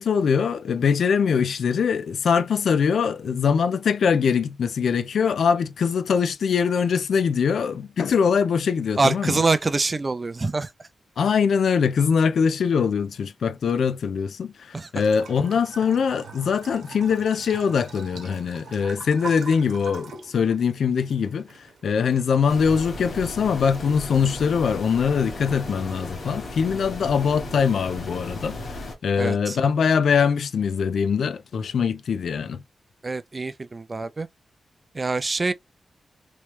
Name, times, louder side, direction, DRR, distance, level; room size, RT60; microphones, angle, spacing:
voice 1, 0.0-9.4 11.2-32.6, left 6 dB, 75° left, 0.4 m, -22 dB
voice 2, 9.0-10.7 14.7-14.9 29.2-29.6 33.0-34.3 34.9-35.5, right 3 dB, 25° right, 0.3 m, -25 dB
Bathtub (filling or washing) / Trickle dribble, 15.0-25.9, right 4 dB, 80° right, 0.9 m, -43 dB
sound 1, 22.5-28.9, left 2 dB, 55° left, 1.3 m, -35 dB
3.1 x 3.0 x 3.1 m
wide cardioid pair, 160°, 0 cm